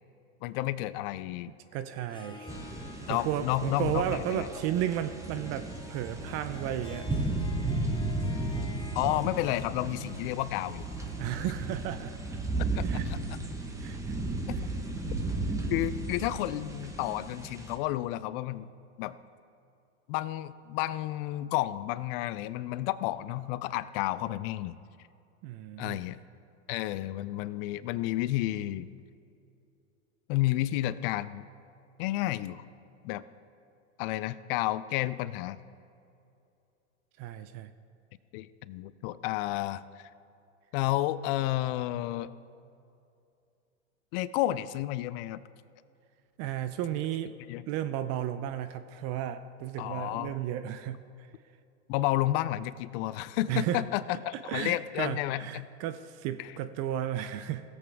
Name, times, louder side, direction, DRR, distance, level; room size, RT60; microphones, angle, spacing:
voice 1, 0.4-1.5 3.1-4.5 9.0-10.8 12.8-13.2 15.7-18.7 19.0-19.2 20.1-24.8 25.8-26.2 26.7-28.9 30.3-31.4 32.0-32.6 33.0-33.2 34.0-35.6 38.3-40.1 40.7-42.3 44.1-45.4 47.5-47.6 49.8-50.3 51.9-55.7 56.4-56.5, left 15 dB, 50° left, 16 dB, 0.5 m, -31 dB
voice 2, 1.7-2.5 3.1-7.1 11.2-12.1 12.8-13.1 13.8-14.1 25.4-26.0 37.2-37.7 46.4-47.3 47.7-51.3 53.5-54.2 54.4-57.6, right 11 dB, 45° right, 11 dB, 0.5 m, -34 dB
Harp, 2.0-13.9, left 3 dB, 15° left, 0.9 m, -50 dB
sound 1, 2.5-17.8, right 2 dB, 10° right, 1.2 m, -34 dB
17.0 x 8.0 x 3.6 m, 2.6 s
hypercardioid pair, 105°, 37 cm